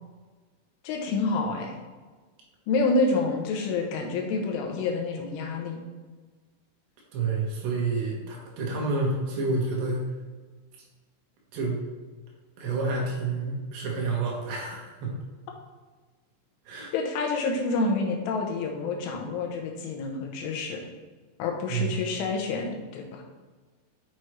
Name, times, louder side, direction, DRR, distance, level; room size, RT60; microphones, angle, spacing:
voice 1, 0.8-1.8 2.7-5.8 16.9-20.8 21.4-23.2, left 3 dB, 85° left, 1 dB, 3.6 m, -28 dB
voice 2, 7.1-10.1 11.5-11.8 12.6-15.2 16.7-16.9 21.7-22.0, right 3 dB, 70° right, -3 dB, 3.5 m, -29 dB
8.2 x 6.1 x 3.2 m, 1.4 s
omnidirectional pair, 5.5 m